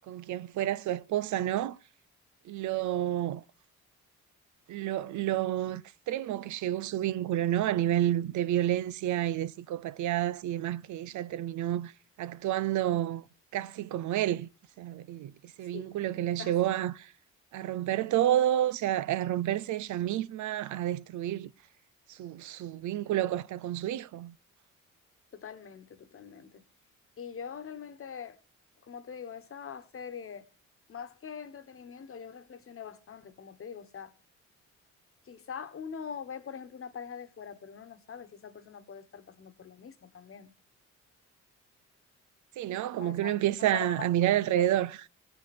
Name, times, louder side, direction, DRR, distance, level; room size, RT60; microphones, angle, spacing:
voice 1, 0.1-1.8 2.5-3.4 4.7-11.9 12.2-13.2 13.5-14.5 14.8-15.3 15.6-17.1 17.5-21.5 22.1-24.3 42.6-45.1, right 12 dB, 75° right, 0.6 m, -29 dB
voice 2, 16.4-16.8 25.3-26.6 27.2-28.4 28.8-30.5 30.9-34.1 35.2-40.5 43.0-44.1 44.5-44.6, left 7 dB, 45° left, 1.4 m, -43 dB
17.5 x 7.9 x 4.3 m
cardioid pair, 90°, 30 cm